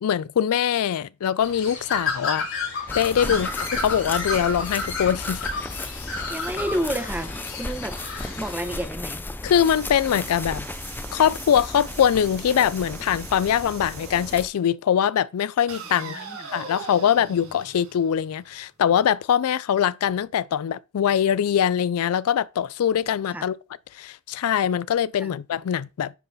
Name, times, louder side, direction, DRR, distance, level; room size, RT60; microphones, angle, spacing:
voice 1, 0.0-2.5 2.9-5.4 9.4-10.6 11.1-23.6 24.0-26.1, left 9 dB, 80° left, 0.4 m, -23 dB
Bird, 1.4-8.9, left 3 dB, 65° left, 4.3 m, -31 dB
sound 1, 2.9-14.5, left 2 dB, 10° left, 0.4 m, -35 dB
voice 2, 6.3-7.3 7.6-7.9 8.3-9.2 16.0-16.5 23.3-23.5 25.2-25.4, right 1 dB, 10° right, 0.8 m, -30 dB
sound 2, 9.6-14.6 15.7-18.6, right 5 dB, 75° right, 2.0 m, -42 dB
9.9 x 3.9 x 4.1 m
head